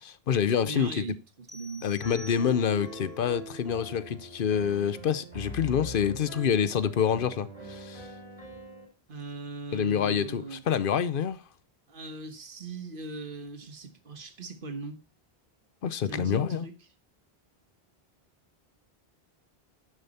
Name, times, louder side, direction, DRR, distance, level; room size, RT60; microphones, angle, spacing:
voice 1, 0.0-1.0 1.8-8.1 9.7-11.4 15.8-16.7, left 8 dB, 65° left, 0.9 m, -27 dB
voice 2, 0.6-1.9 9.1-10.6 11.9-15.0 16.0-16.7, right 3 dB, 60° right, 1.5 m, -39 dB
sound 1, 1.5-3.0, equal, ahead, 0.6 m, -49 dB
Piano, 2.0-8.8, right 1 dB, 40° left, 4.6 m, -42 dB
10.5 x 6.9 x 4.3 m
omnidirectional pair, 1.0 m